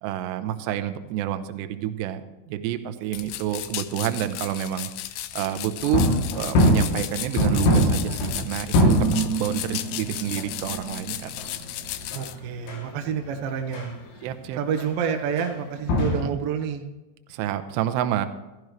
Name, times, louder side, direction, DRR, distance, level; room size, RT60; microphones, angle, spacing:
voice 1, 0.0-4.9 5.3-6.1 6.3-11.3 14.2-14.6 16.2-16.4 17.3-18.3, right 12 dB, 90° right, 8 dB, 2.4 m, -28 dB
sound 1, 3.1-12.3, left 14 dB, 90° left, 2.6 m, -35 dB
sound 2, 5.8-13.9 14.2-14.3 14.8-15.0 15.4-15.5 15.8-16.3, equal, 70° left, 5.2 m, -24 dB
voice 2, 12.1-13.9 14.6-16.9, right 7 dB, 75° right, 4 dB, 2.1 m, -28 dB
15.5 x 14.5 x 3.2 m, 1.1 s
omnidirectional pair, 5.9 m